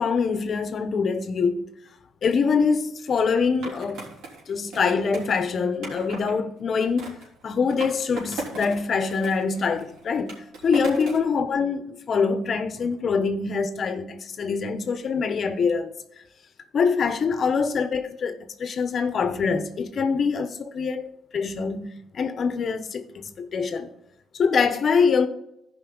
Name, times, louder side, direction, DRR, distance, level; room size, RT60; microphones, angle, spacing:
voice 1, 0.0-1.7 2.2-4.0 4.5-7.1 7.4-15.9 16.7-23.9 24.3-25.3, left 5 dB, 55° left, 1.0 m, -24 dB
Skateboard, 3.6-6.3 7.0-8.8 9.1-11.3, right 3 dB, 85° right, 3.5 m, -38 dB
15.0 x 5.3 x 4.0 m
cardioid pair, 90°, 0 cm